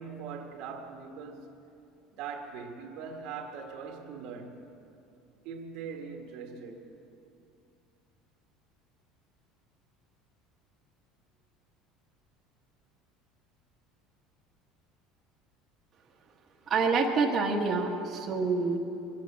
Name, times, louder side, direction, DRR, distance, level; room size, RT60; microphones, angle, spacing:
voice 1, 0.0-1.4 2.1-4.6 5.4-6.9, right 5 dB, 60° right, 1.6 m, -41 dB
voice 2, 16.7-18.8, right 4 dB, 25° right, 1.5 m, -27 dB
23.0 x 8.6 x 7.2 m
cardioid pair, 160°, 0 cm